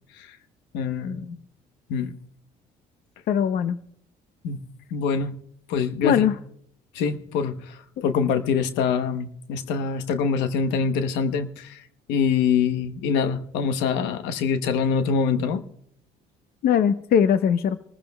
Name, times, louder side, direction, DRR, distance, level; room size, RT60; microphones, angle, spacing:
voice 1, 0.7-1.4 1.9-2.1 4.4-4.6 4.9-5.3 5.7-6.3 6.9-7.7 8.0-11.8 12.1-15.6, left 6 dB, 85° left, 10 dB, 1.0 m, -24 dB
voice 2, 3.3-3.8 6.0-6.4 8.0-8.1 16.6-17.8, left 8 dB, 60° left, 11 dB, 0.7 m, -20 dB
27.0 x 14.5 x 2.3 m, 0.69 s
supercardioid pair, 80°, 17 cm